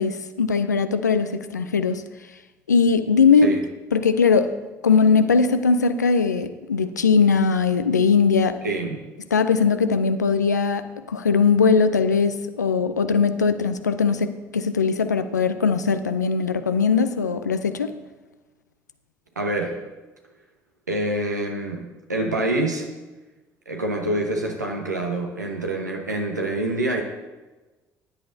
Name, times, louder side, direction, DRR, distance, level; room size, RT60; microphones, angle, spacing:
voice 1, 0.0-2.0 2.7-3.5 3.9-4.5 4.8-8.6 9.3-17.9, left 5 dB, 90° left, 10 dB, 0.5 m, -20 dB
voice 2, 8.6-9.0 19.4-19.8 20.9-22.9 23.7-27.0, right 2 dB, 90° right, 2 dB, 1.1 m, -26 dB
14.5 x 10.5 x 2.7 m, 1.2 s
figure-of-eight pair, 50°, 9 cm